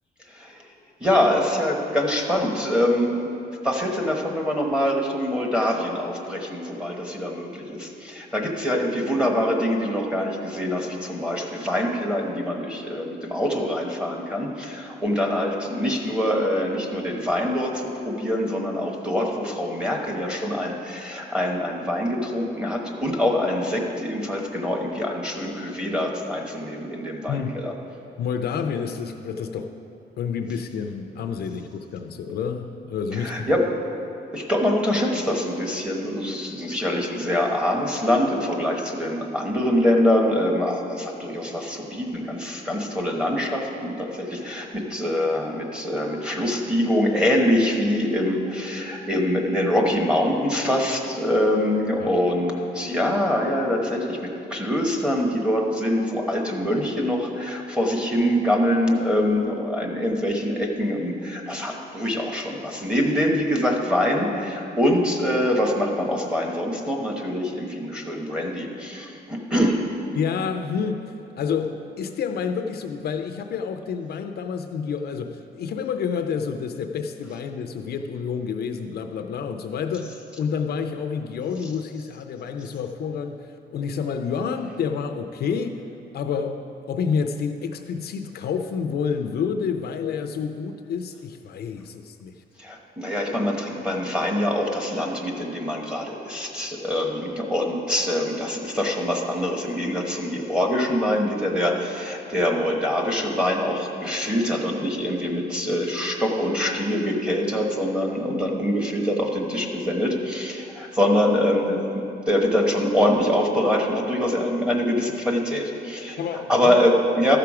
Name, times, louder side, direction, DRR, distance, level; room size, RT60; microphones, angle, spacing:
voice 1, 1.0-3.3 3.6-27.7 33.1-33.7 34.3-69.8 92.6-116.2 116.5-117.4, left 1 dB, 5° right, -1 dB, 1.0 m, -24 dB
voice 2, 27.3-27.6 28.2-29.7 30.2-33.5 52.0-52.1 70.1-85.8 86.1-92.4 116.2-116.7, left 6 dB, 60° left, 6 dB, 0.5 m, -29 dB
13.5 x 5.8 x 4.8 m, 2.8 s
cardioid pair, 155°, 18 cm